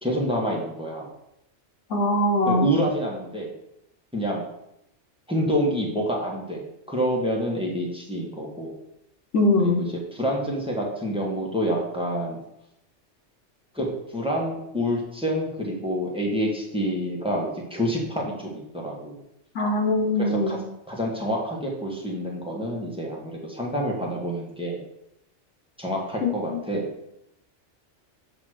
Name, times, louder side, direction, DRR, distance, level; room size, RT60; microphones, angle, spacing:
voice 1, 0.0-1.1 2.5-3.5 4.1-4.4 5.3-8.7 9.6-9.8 10.1-12.4 13.7-13.9 14.1-19.1 20.2-20.6 20.9-24.8 25.8-26.9, equal, 5° right, -2 dB, 1.3 m, -27 dB
voice 2, 1.9-2.7 9.3-9.9 19.5-20.6 26.2-26.6, left 1 dB, 85° left, 2 dB, 1.4 m, -22 dB
8.0 x 3.1 x 6.3 m, 0.83 s
omnidirectional pair, 1.2 m